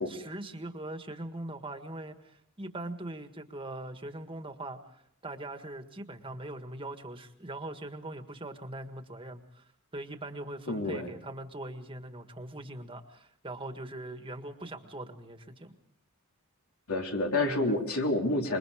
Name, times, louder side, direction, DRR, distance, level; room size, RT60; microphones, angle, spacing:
voice 1, 0.0-15.7 17.4-17.8, right 1 dB, 25° right, 6 dB, 1.6 m, -41 dB
voice 2, 10.7-11.1 16.9-18.6, left 2 dB, 80° left, 2 dB, 3.3 m, -29 dB
26.5 x 22.0 x 5.0 m, 0.70 s
head